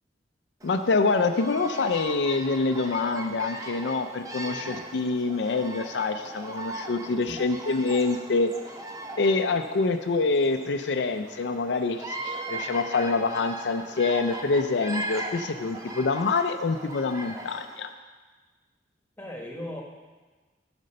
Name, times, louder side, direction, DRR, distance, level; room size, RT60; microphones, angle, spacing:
voice 1, 0.6-8.5 9.2-17.9, left 3 dB, 80° left, 7 dB, 0.5 m, -26 dB
Bird vocalization bird call bird song, 0.6-17.9, right 1 dB, 20° right, 0.8 m, -39 dB
voice 2, 4.4-4.8 7.3-7.4 19.2-19.8, left 1 dB, 10° left, -1 dB, 1.3 m, -38 dB
9.2 x 5.3 x 6.5 m, 1.3 s
head